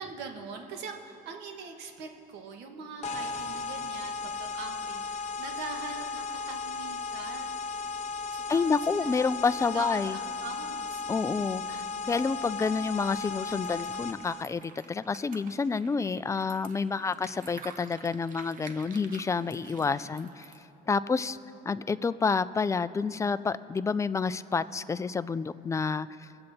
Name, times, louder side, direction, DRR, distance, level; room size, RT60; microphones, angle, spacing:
voice 1, 0.0-7.6 8.3-9.3 9.6-11.0 11.7-12.7 19.6-19.8 20.9-21.0, right 4 dB, 85° right, 4 dB, 1.4 m, -43 dB
sound 1, 3.0-14.4, left 4 dB, 45° left, 0.8 m, -35 dB
voice 2, 8.5-10.2 11.1-20.5 20.9-21.4 21.7-26.3, left 5 dB, 20° left, 14 dB, 0.3 m, -29 dB
sound 2, 13.1-20.7, right 5 dB, 55° right, 1.1 m, -50 dB
23.0 x 7.8 x 4.2 m, 2.8 s
cardioid pair, 110°, 17 cm